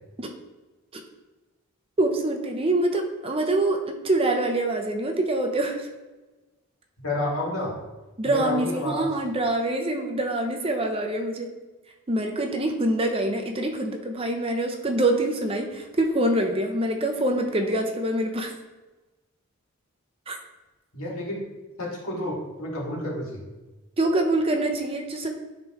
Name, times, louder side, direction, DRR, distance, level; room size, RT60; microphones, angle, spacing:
voice 1, 2.0-5.9 8.2-11.5 12.1-18.5 20.3-20.4 24.0-25.3, right 1 dB, 25° right, 4 dB, 0.6 m, -25 dB
voice 2, 7.0-7.8 8.2-9.1 20.9-21.4 21.8-23.4, left 1 dB, 75° left, -4 dB, 2.1 m, -30 dB
10.0 x 3.7 x 3.0 m, 1.2 s
head